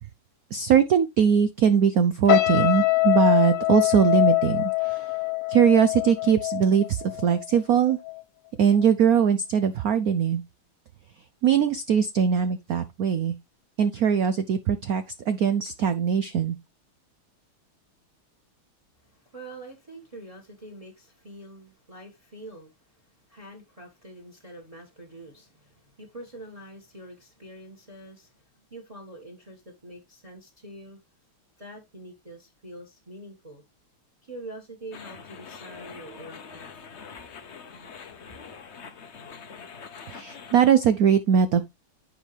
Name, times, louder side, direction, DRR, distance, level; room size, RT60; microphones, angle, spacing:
voice 1, 0.5-5.1 5.5-8.0 8.6-10.4 11.4-13.3 13.8-16.6 40.1-41.6, right 7 dB, 85° right, 0.8 m, -21 dB
sound 1, 2.3-7.6 7.9-8.2, left 20 dB, 90° left, 1.8 m, -24 dB
voice 2, 19.0-31.0 31.6-33.6 34.2-36.7, right 1 dB, 15° right, 1.6 m, -45 dB
sound 2, 34.9-40.6, left 6 dB, 50° left, 0.8 m, -44 dB
10.0 x 5.1 x 3.4 m
omnidirectional pair, 2.4 m